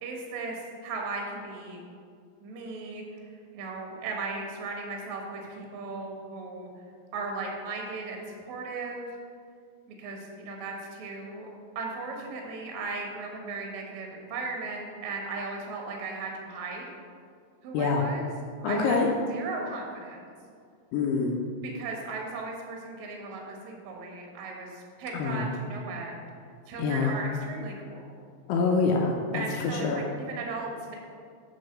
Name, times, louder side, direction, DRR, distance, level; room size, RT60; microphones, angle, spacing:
voice 1, 0.0-1.8 2.4-6.7 7.1-9.1 9.9-11.5 11.7-16.9 17.6-18.3 18.6-19.0 19.3-20.3 21.6-26.3 26.7-28.0 29.3-30.9, right 3 dB, 75° right, 0 dB, 1.6 m, -37 dB
voice 2, 18.6-19.1 20.9-21.4 25.1-25.5 26.8-27.1 28.5-29.4 29.8-30.0, left 4 dB, 80° left, 1 dB, 2.4 m, -25 dB
9.9 x 3.8 x 6.5 m, 2.2 s
omnidirectional pair, 5.4 m